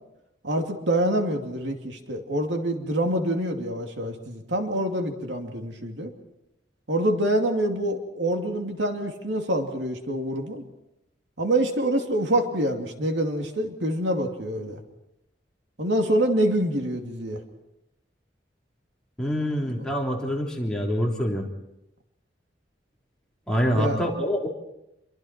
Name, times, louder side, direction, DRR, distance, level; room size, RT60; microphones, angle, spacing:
voice 1, 0.4-6.1 6.9-10.6 11.4-14.8 15.8-17.4 19.7-19.8 23.7-24.0, right 1 dB, 80° right, 3 dB, 2.7 m, -26 dB
voice 2, 19.2-21.5 23.5-24.5, equal, 5° left, -2 dB, 3.4 m, -25 dB
28.0 x 23.5 x 4.5 m, 0.88 s
head